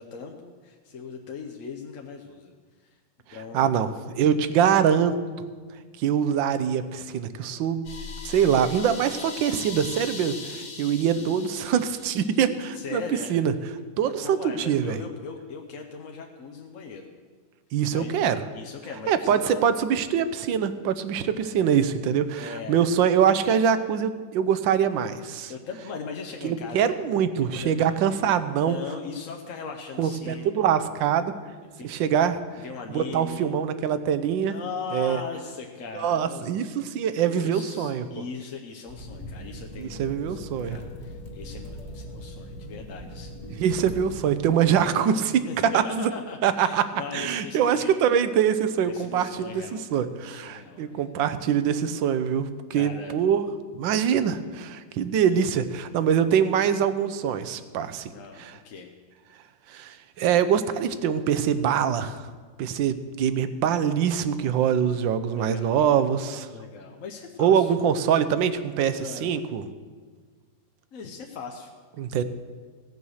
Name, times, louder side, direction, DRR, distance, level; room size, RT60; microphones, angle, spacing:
voice 1, 0.0-2.5 2.8-3.0 3.3-3.8 7.6-8.1 8.9-9.0 11.1-11.2 12.7-13.4 14.0-17.1 17.9-19.6 21.5-21.8 22.4-23.0 25.5-26.9 27.5-27.9 28.6-30.5 31.7-31.9 32.6-33.5 34.4-36.8 37.1-43.7 44.2-48.0 48.8-51.1 52.7-53.2 58.1-58.9 65.3-65.8 66.5-67.7 69.0-69.3 70.9-71.7, left 5 dB, 55° left, 2 dB, 1.0 m, -39 dB
voice 2, 3.5-3.9 4.1-5.1 6.0-7.8 8.2-13.0 13.3-13.5 14.0-14.4 14.7-15.0 17.7-18.4 19.1-25.5 26.4-28.8 30.0-31.3 31.8-32.4 32.9-34.5 34.9-35.2 36.0-38.0 39.8-40.8 43.6-45.3 45.7-46.1 46.4-46.8 47.1-49.6 49.9-53.5 53.7-58.1 58.4-58.5 59.7-62.2 62.6-66.5 67.4-69.6 72.0-72.2, right 8 dB, 85° right, 12 dB, 1.4 m, -24 dB
sound 1, 7.8-12.7, left 4 dB, 85° left, 2.3 m, -40 dB
sound 2, 38.9-44.4, equal, 25° left, 1.2 m, -40 dB
16.5 x 6.9 x 6.4 m, 1.5 s
omnidirectional pair, 2.0 m